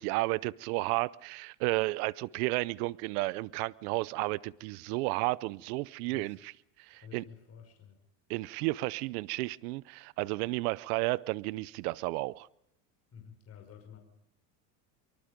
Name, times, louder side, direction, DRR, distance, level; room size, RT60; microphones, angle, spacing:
voice 1, 0.0-6.5 6.9-7.2 8.3-12.5, right 22 dB, 75° right, 0.8 m, -32 dB
voice 2, 6.0-6.4 6.9-8.0 13.1-14.0, left 8 dB, 30° left, 5.6 m, -51 dB
24.0 x 24.0 x 5.2 m
supercardioid pair, 125°, 45 cm